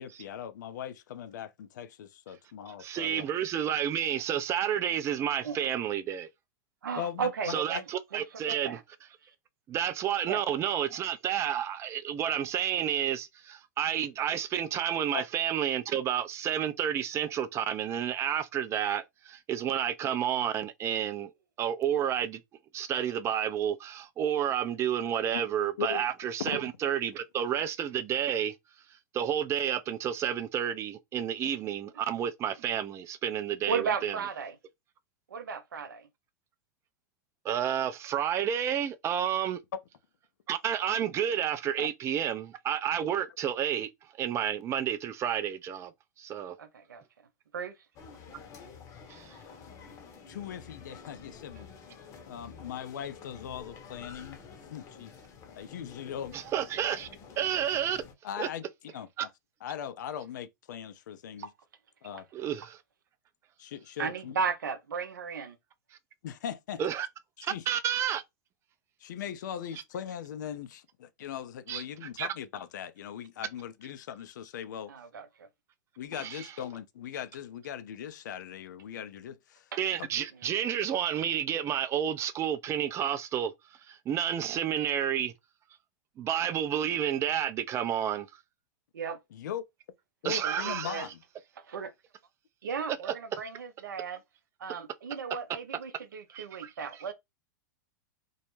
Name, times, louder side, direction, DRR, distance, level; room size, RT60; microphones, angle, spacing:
voice 1, 0.0-3.3 7.0-7.8 15.1-15.2 25.3-25.4 25.8-26.0 26.4-26.6 41.8-41.9 49.9-50.0 50.3-51.7 52.3-54.4 54.7-55.1 55.6-56.4 58.2-58.6 58.9-59.3 59.6-61.5 62.0-62.3 63.6-64.4 66.2-66.8 67.4-67.7 69.0-74.9 76.0-79.7 80.0-80.1 89.3-89.6 90.2-91.2, left 9 dB, 70° left, 0.4 m, -39 dB
voice 2, 2.8-6.3 7.5-8.8 9.7-21.3 21.6-22.4 22.7-28.5 29.1-34.1 37.4-39.6 40.5-43.9 44.2-45.9 46.2-46.6 49.1-49.4 56.3-57.1 57.4-58.0 58.4-58.5 59.2-59.3 62.3-62.8 66.8-67.1 67.4-68.2 71.7-71.8 72.2-72.3 76.2-76.5 79.8-83.5 83.9-85.3 86.2-88.3 90.2-91.0 92.9-93.1 96.3-96.7, right 9 dB, 25° right, 0.3 m, -30 dB
voice 3, 6.8-7.8 8.1-8.8 9.2-9.3 10.3-10.4 33.7-34.6 35.3-36.1 46.6-47.0 47.5-47.7 61.4-61.5 62.1-62.2 64.0-65.6 74.9-75.5 79.7-79.8 80.4-80.5 88.9-89.2 90.4-91.1 91.6-91.9 92.6-94.2 94.6-97.1, right 6 dB, 80° right, 0.5 m, -35 dB
sound 1, 47.9-58.1, left 6 dB, 30° left, 0.7 m, -49 dB
2.2 x 2.0 x 3.0 m
hypercardioid pair, 105°, 10 cm